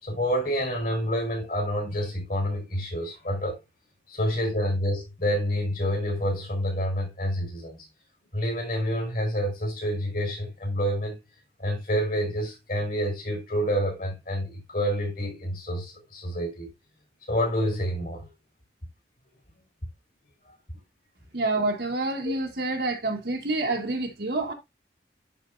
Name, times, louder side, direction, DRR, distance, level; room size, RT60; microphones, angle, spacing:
voice 1, 0.0-3.6 4.1-7.8 8.3-11.2 11.6-16.7 17.3-18.3 22.2-22.3, equal, 50° left, 4.8 m, -28 dB
voice 2, 21.3-24.5, right 2 dB, 65° right, 1.6 m, -28 dB
11.0 x 4.6 x 2.6 m
head